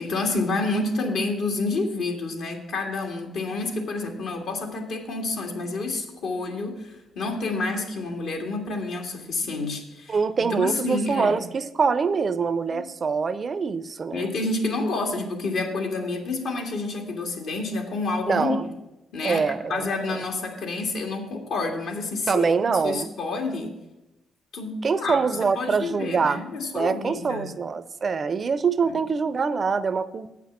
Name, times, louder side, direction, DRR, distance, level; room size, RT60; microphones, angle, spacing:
voice 1, 0.0-11.4 12.7-12.8 14.1-18.7 19.1-22.5 22.8-23.8 24.5-25.2 25.6-27.5 28.9-29.0, left 3 dB, 75° left, 3 dB, 1.8 m, -29 dB
voice 2, 10.1-14.3 18.3-18.6 19.2-20.2 22.3-23.1 24.8-26.4 26.7-30.3, right 5 dB, 40° right, 14 dB, 0.5 m, -24 dB
8.3 x 5.9 x 7.2 m, 0.98 s
cardioid pair, 90°, 0 cm